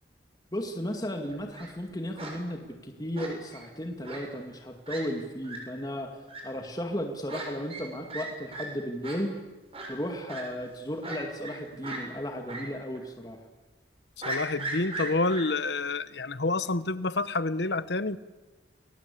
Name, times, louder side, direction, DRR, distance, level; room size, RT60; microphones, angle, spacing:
voice 1, 0.5-6.2 6.4-9.3 9.9-13.4, equal, 20° left, 2.2 m, -34 dB
Fowl, 1.3-1.7 2.2-2.3 3.2-3.6 4.0-4.2 4.5-4.6 4.9-5.0 5.4-5.6 6.3-6.4 7.3-7.4 7.7-7.8 8.1-8.3 8.5-8.6 9.0-9.2 9.7-9.9 10.3-10.4 11.0-11.6 11.8-12.0 12.5-12.6 13.0-13.1 14.2-15.4, right 2 dB, 30° right, 7.5 m, -37 dB
voice 2, 14.2-18.2, left 3 dB, 65° left, 1.1 m, -28 dB
29.0 x 22.5 x 8.5 m
head